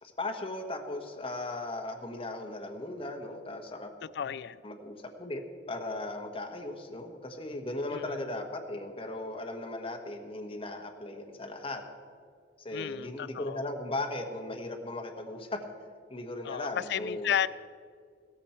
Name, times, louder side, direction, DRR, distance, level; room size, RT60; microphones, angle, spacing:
voice 1, 0.0-3.9 4.6-5.4 5.7-11.8 12.6-15.6 16.1-17.3, left 2 dB, 35° left, 2 dB, 1.3 m, -37 dB
voice 2, 4.1-4.6 7.9-8.1 12.7-13.6 16.4-17.5, left 9 dB, 70° left, 17 dB, 0.3 m, -32 dB
16.5 x 14.0 x 4.4 m, 2.1 s
head